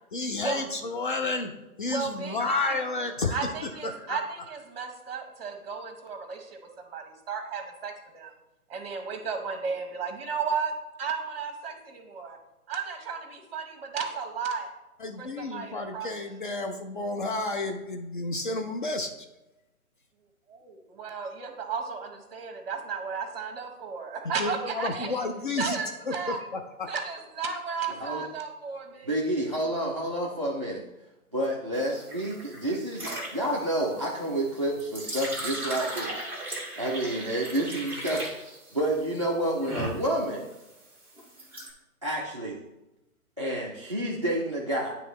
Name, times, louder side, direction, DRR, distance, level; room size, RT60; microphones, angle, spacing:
voice 1, 0.1-1.5 1.8-3.5 3.8-4.2 15.0-19.1 24.4-25.8 26.1-26.6, left 3 dB, 35° left, 4 dB, 0.5 m, -31 dB
voice 2, 1.9-2.8 3.3-8.3 8.7-10.7 11.0-12.4 12.7-14.7 15.2-16.3 20.5-25.3 25.6-26.4 26.8-29.1, right 5 dB, 40° right, 5 dB, 1.4 m, -34 dB
voice 3, 29.0-30.9 31.3-36.2 36.8-38.4 38.7-40.5 42.0-42.6 43.4-44.9, right 1 dB, 25° right, -4 dB, 0.4 m, -29 dB
sound 1, 31.7-41.7, right 1 dB, 5° right, 1.2 m, -37 dB
9.3 x 3.4 x 4.6 m, 0.98 s
figure-of-eight pair, 140°, 44 cm